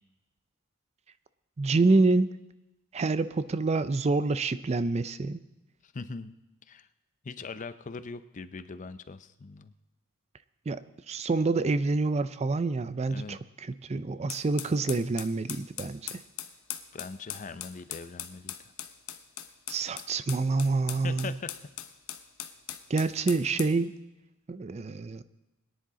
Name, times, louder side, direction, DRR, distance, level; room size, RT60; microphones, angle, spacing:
voice 1, 1.6-2.3 2.9-5.4 10.7-10.8 11.1-13.4 13.7-16.0 19.7-21.3 22.9-23.9 24.5-25.2, right 3 dB, 30° right, 14 dB, 0.4 m, -27 dB
voice 2, 5.8-6.3 6.7-6.9 7.2-9.7 13.1-13.4 16.9-18.5 21.0-21.5, left 4 dB, 35° left, 13 dB, 0.5 m, -41 dB
sound 1, 14.3-23.8, left 11 dB, 70° left, 0.9 m, -40 dB
22.0 x 10.0 x 3.7 m, 0.99 s
head